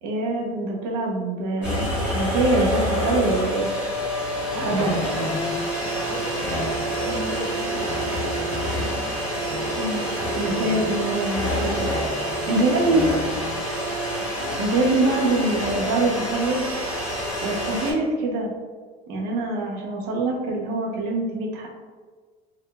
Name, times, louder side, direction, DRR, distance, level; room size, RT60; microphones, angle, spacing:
voice 1, 0.0-3.7 4.6-5.0 9.8-10.0 10.4-11.9 12.5-13.0 14.6-16.6 17.4-18.5 19.1-21.7, right 2 dB, 70° right, -1 dB, 0.8 m, -24 dB
sound 1, 1.6-17.9, equal, 5° right, 1.0 m, -27 dB
voice 2, 4.5-10.9 11.9-13.5 14.1-14.2, left 2 dB, 85° left, 0 dB, 0.7 m, -34 dB
3.5 x 2.3 x 2.3 m, 1.5 s
cardioid pair, 155°, 19 cm